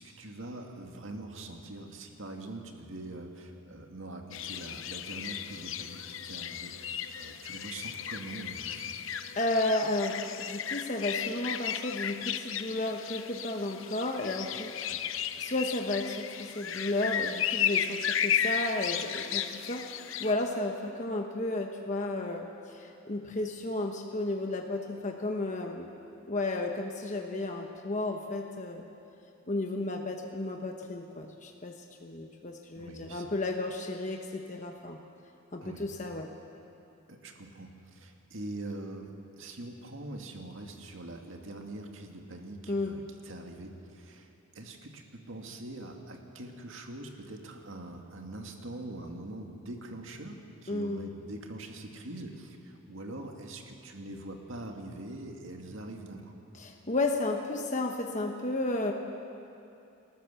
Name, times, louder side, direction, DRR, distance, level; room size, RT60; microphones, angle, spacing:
voice 1, 0.0-9.2 14.9-15.0 32.8-33.3 35.6-35.9 37.1-56.4, right 2 dB, 70° right, 3 dB, 2.1 m, -43 dB
sound 1, 4.3-20.3, left 9 dB, 70° left, 0.8 m, -34 dB
voice 2, 9.3-14.7 15.1-25.9 26.3-28.8 29.5-31.8 32.0-35.0 35.5-36.3 42.7-43.0 50.7-51.0 56.6-58.9, left 2 dB, 35° left, 2 dB, 1.1 m, -33 dB
30.0 x 13.5 x 7.0 m, 2.7 s
head